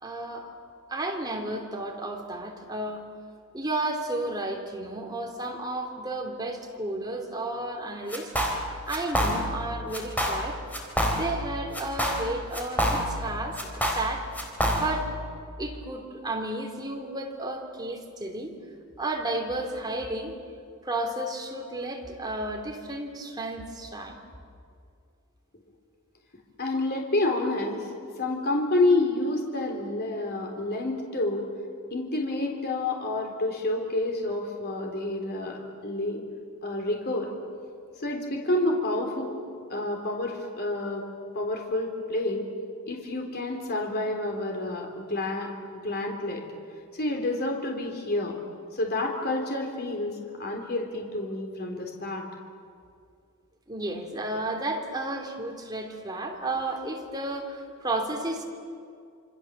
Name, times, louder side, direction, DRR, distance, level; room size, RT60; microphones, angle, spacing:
voice 1, 0.0-0.5 0.9-3.1 3.5-8.3 8.9-10.6 11.0-14.3 14.7-15.1 15.6-18.5 19.0-20.3 20.8-24.2 53.7-58.4, right 2 dB, 20° right, 2 dB, 3.3 m, -32 dB
sound 1, 8.1-8.6 8.9-9.6 9.9-10.5 10.7-11.5 11.7-13.3 13.6-15.1, equal, 5° left, 3.8 m, -27 dB
voice 2, 26.6-27.9 28.2-31.4 31.9-36.2 36.6-37.3 38.0-39.3 39.7-41.0 41.3-42.5 42.9-45.5 45.8-46.4 46.9-48.4 48.7-52.3, left 2 dB, 45° left, 1 dB, 3.5 m, -29 dB
27.0 x 26.5 x 7.5 m, 2.3 s
head